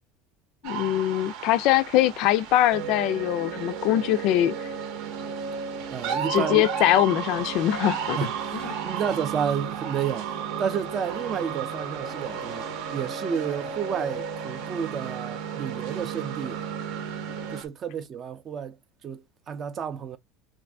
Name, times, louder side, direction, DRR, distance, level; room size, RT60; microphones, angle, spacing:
voice 1, 0.6-4.5 6.3-8.2, left 14 dB, 55° left, 0.3 m, -22 dB
sound 1, 0.6-17.7, right 8 dB, 60° right, 0.8 m, -36 dB
sound 2, 2.7-17.6, right 5 dB, 80° right, 1.1 m, -35 dB
voice 2, 5.9-6.6 8.2-16.6 17.5-18.8 19.0-20.2, right 7 dB, 30° right, 0.4 m, -31 dB
2.6 x 2.5 x 3.3 m
cardioid pair, 160°, 0 cm